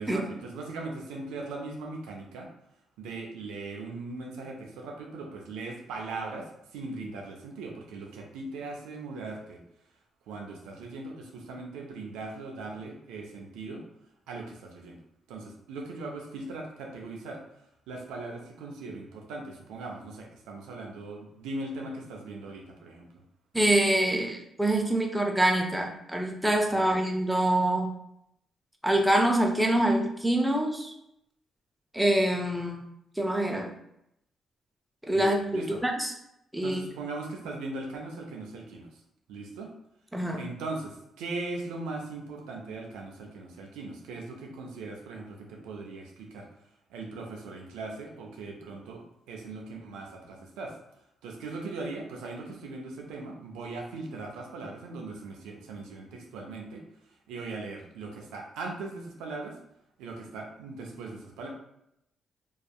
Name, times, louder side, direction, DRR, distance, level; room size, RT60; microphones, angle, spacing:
voice 1, 0.0-2.5 3.0-9.6 10.3-13.8 14.3-15.0 15.3-17.4 17.9-23.1 26.8-27.0 35.1-35.8 36.6-39.0 39.3-39.7 40.4-46.5 46.9-50.8 51.2-56.8 57.3-59.6 60.0-61.5, right 3 dB, 85° right, 1 dB, 0.4 m, -39 dB
voice 2, 23.5-27.9 28.8-30.9 31.9-32.8 33.2-33.7 35.1-36.1 36.5-36.8 40.1-40.4, right 1 dB, 10° right, 2 dB, 0.5 m, -25 dB
2.7 x 2.3 x 2.3 m, 0.78 s
supercardioid pair, 55°, 0 cm